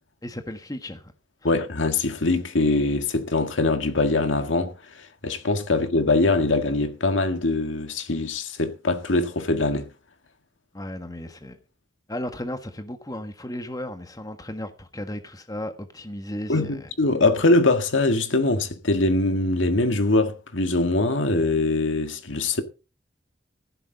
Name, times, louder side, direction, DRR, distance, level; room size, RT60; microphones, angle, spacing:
voice 1, 0.2-1.1 10.7-11.6 12.1-16.9, left 1 dB, 20° left, 1.5 m, -35 dB
voice 2, 1.4-9.9 16.5-22.6, left 2 dB, 85° left, 1.9 m, -23 dB
15.0 x 11.5 x 3.9 m
head